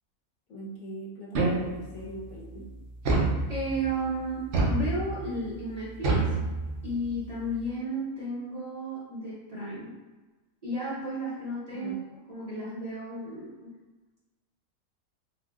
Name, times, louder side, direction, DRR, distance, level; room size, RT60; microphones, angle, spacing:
voice 1, 0.5-2.8 11.7-12.0, right 1 dB, 60° left, -5 dB, 1.1 m, -42 dB
sound 1, 1.3-2.0 3.0-3.9 4.5-5.3 6.0-7.0, right 3 dB, 60° right, 0.9 m, -27 dB
voice 2, 3.5-6.2 6.8-9.9 10.6-12.0 12.3-13.7, right 1 dB, 30° right, -10 dB, 0.9 m, -33 dB
3.7 x 2.8 x 2.4 m, 1.2 s
omnidirectional pair, 1.5 m